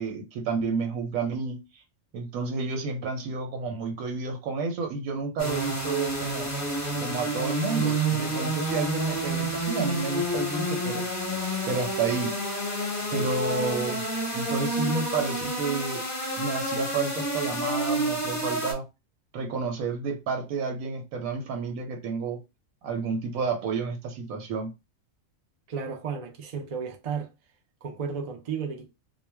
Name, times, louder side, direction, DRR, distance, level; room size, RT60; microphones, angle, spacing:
voice 1, 0.0-1.6 2.1-6.5 7.0-11.1 11.7-12.4 13.1-14.0 14.3-16.0 16.4-18.8 19.3-22.4 22.8-24.7, right 4 dB, 90° right, 1.1 m, -30 dB
sound 1, 5.4-18.7, right 1 dB, 15° left, 0.6 m, -29 dB
voice 2, 25.7-27.3 27.8-28.9, right 6 dB, 60° right, 0.4 m, -33 dB
2.3 x 2.1 x 3.2 m
omnidirectional pair, 1.4 m